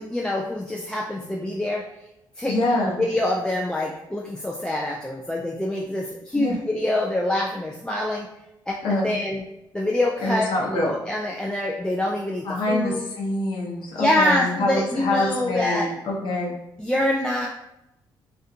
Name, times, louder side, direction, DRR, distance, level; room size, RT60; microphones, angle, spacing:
voice 1, 0.0-1.8 2.4-8.3 8.7-9.4 9.7-13.1 14.0-15.9 16.8-17.5, left 1 dB, 10° left, -2 dB, 0.3 m, -25 dB
voice 2, 2.5-3.0 6.3-6.6 8.8-9.1 10.2-10.9 12.4-16.5, left 2 dB, 65° left, -2 dB, 0.8 m, -25 dB
2.5 x 2.2 x 2.6 m, 0.88 s
cardioid pair, 80°, 9 cm